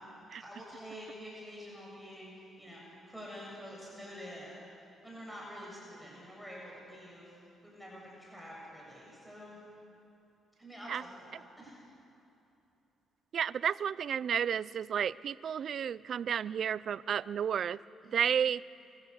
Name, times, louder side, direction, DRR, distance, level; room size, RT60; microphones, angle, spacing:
voice 1, 0.0-2.8 3.1-9.6 10.6-11.8 18.0-18.3, equal, ahead, -4 dB, 7.2 m, -48 dB
voice 2, 13.3-17.8 18.1-18.6, right 8 dB, 60° right, 19 dB, 0.4 m, -32 dB
23.0 x 15.0 x 8.2 m, 2.8 s
cardioid pair, 90°, 0 cm